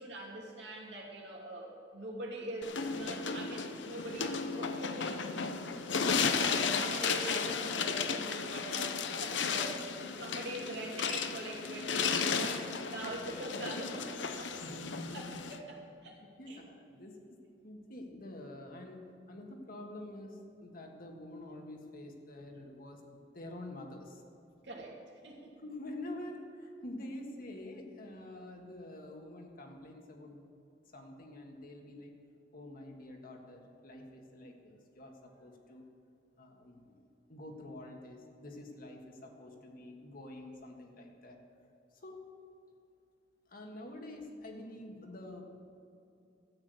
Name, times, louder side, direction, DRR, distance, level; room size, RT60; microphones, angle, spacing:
voice 1, 0.0-5.2 6.1-14.6 15.1-16.2 16.5-16.6 24.6-25.0 25.2-25.5, right 2 dB, 70° right, -2 dB, 2.7 m, -43 dB
sound 1, 2.6-15.6, left 5 dB, 80° left, 0.8 m, -34 dB
voice 2, 6.0-6.3 14.6-15.4 16.0-17.2 17.6-19.0 19.3-23.0 23.3-24.2 25.6-30.4 30.9-32.1 32.5-35.8 36.4-41.4 41.9-42.2 43.5-45.4, left 1 dB, 55° left, 2 dB, 1.7 m, -47 dB
13.5 x 8.8 x 7.8 m, 2.6 s
head